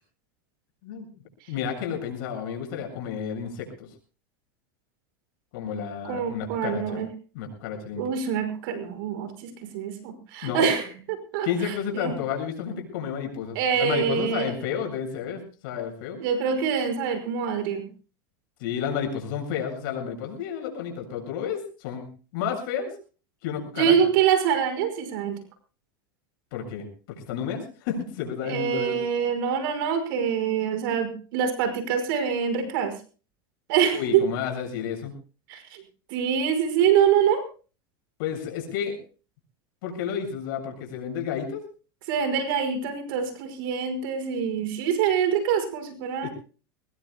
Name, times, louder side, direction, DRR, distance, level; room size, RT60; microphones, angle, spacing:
voice 1, 1.5-3.9 5.5-7.0 7.3-8.0 10.4-10.8 11.4-16.2 18.6-22.1 22.3-23.0 23.4-24.0 26.5-29.0 33.9-35.1 38.2-39.0 39.8-41.6 46.2-46.3, left 7 dB, 65° left, 3 dB, 7.4 m, -31 dB
voice 2, 6.0-7.1 8.0-10.8 11.3-12.1 13.5-14.5 16.2-17.9 23.7-25.4 28.4-32.9 33.7-34.2 35.5-35.8 36.1-37.4 42.1-46.3, right 8 dB, 70° right, 9 dB, 5.5 m, -25 dB
24.0 x 20.0 x 2.3 m, 0.36 s
supercardioid pair, 130°, 12 cm